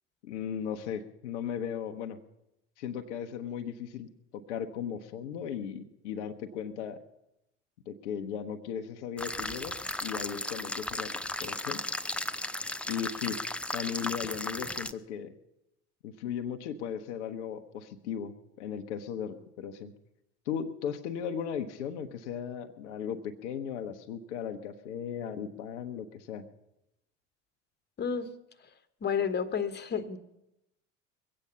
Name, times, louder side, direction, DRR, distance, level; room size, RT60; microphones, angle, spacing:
voice 1, 0.2-2.2 2.8-7.0 7.9-11.8 12.9-13.4 13.7-15.3 16.0-19.9 20.5-26.4, left 8 dB, 75° left, 6 dB, 1.0 m, -37 dB
sound 1, 9.2-14.9, left 1 dB, 5° left, 0.5 m, -35 dB
voice 2, 28.0-28.3 29.0-30.2, left 6 dB, 30° left, 11 dB, 1.3 m, -30 dB
21.5 x 8.7 x 6.8 m, 0.88 s
hypercardioid pair, 70°, 36 cm